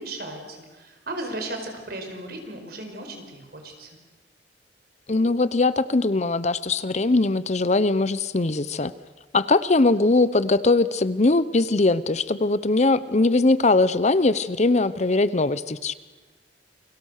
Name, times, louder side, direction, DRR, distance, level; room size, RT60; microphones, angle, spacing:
voice 1, 0.0-4.0, right 1 dB, 60° right, 4 dB, 5.0 m, -36 dB
voice 2, 5.1-8.9 9.3-15.9, left 3 dB, 40° left, 16 dB, 0.8 m, -21 dB
29.5 x 23.0 x 6.6 m, 1.3 s
head